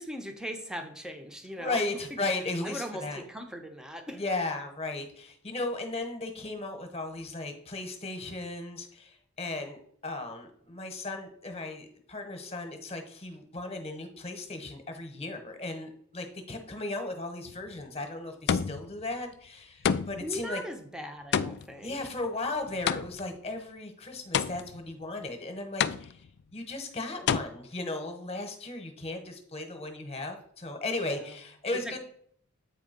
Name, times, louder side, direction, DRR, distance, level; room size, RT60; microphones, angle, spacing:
voice 1, 0.0-2.2 2.6-4.2 19.8-19.9 20.2-22.0 31.0-31.4 31.7-32.0, equal, 5° right, 0.8 m, -39 dB
voice 2, 1.6-3.2 4.2-20.6 21.8-26.2 26.5-32.0, left 2 dB, 30° left, 1.2 m, -36 dB
sound 1, 17.5-17.8 18.5-19.0 19.8-20.4 21.3-23.4 24.3-24.9 25.8-26.4 27.3-27.4, left 7 dB, 55° left, 0.3 m, -29 dB
8.4 x 3.5 x 5.2 m
head